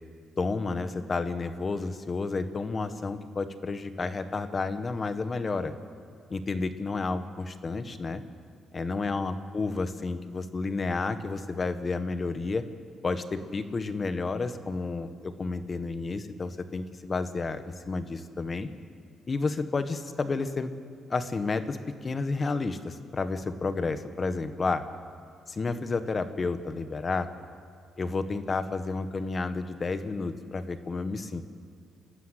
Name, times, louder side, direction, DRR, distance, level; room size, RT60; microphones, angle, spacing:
voice 1, 0.4-5.7 6.3-8.2 8.7-12.6 13.0-18.7 19.3-20.7 21.1-21.8 22.0-24.8 25.5-27.3 28.0-31.4, left 3 dB, 35° left, 10 dB, 1.5 m, -31 dB
29.5 x 13.0 x 8.3 m, 2.3 s
cardioid pair, 90°, 0 cm